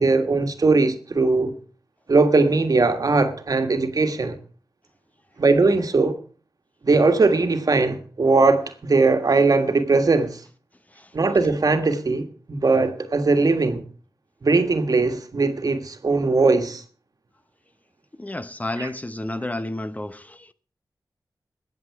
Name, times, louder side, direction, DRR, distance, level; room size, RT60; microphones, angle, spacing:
voice 1, 0.0-1.5 2.1-4.4 5.4-6.2 6.8-10.4 11.1-13.8 14.4-16.8 18.8-18.9, right 3 dB, 60° right, 1.6 m, -20 dB
voice 2, 18.2-20.5, left 1 dB, 20° left, 0.8 m, -31 dB
20.0 x 7.9 x 4.7 m
cardioid pair, 55°, 7 cm